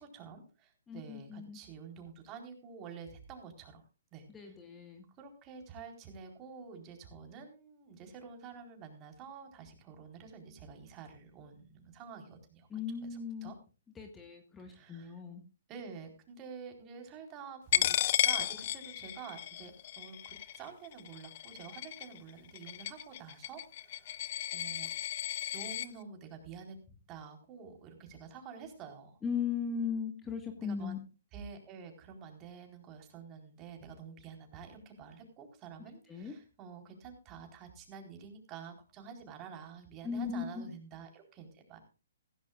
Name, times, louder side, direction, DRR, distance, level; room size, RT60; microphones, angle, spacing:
voice 1, 0.0-3.8 4.1-4.5 5.2-12.8 13.4-13.5 14.6-15.1 15.7-18.0 18.2-24.2 24.5-24.9 25.5-26.8 27.1-29.2 30.6-31.0 31.3-41.8, right 6 dB, 25° right, 4 dB, 4.3 m, -49 dB
voice 2, 0.9-1.6 4.3-5.0 12.7-13.5 13.9-15.4 29.2-31.0 36.1-36.3 40.0-40.7, left 6 dB, 15° left, 5 dB, 1.6 m, -37 dB
Coin (dropping), 17.7-25.9, left 12 dB, 50° left, 0.8 m, -34 dB
16.5 x 15.0 x 2.5 m, 0.33 s
hypercardioid pair, 140°, 0 cm